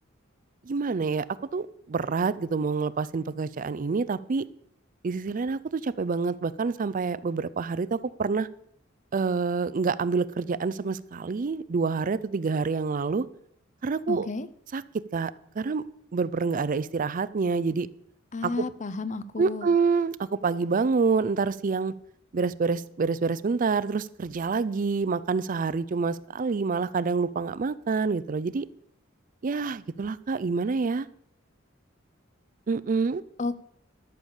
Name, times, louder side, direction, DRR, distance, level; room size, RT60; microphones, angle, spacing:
voice 1, 0.7-1.3 1.5-4.5 5.0-8.5 9.1-13.3 13.8-14.3 14.7-14.8 15.1-15.8 16.1-17.9 18.4-18.7 19.4-21.9 22.3-28.7 29.4-31.1 32.7-33.2, right 4 dB, 45° right, 17 dB, 0.4 m, -27 dB
voice 2, 14.1-14.5 18.3-19.7 33.4-33.6, left 3 dB, 40° left, 15 dB, 0.7 m, -32 dB
12.5 x 6.8 x 7.1 m, 0.68 s
head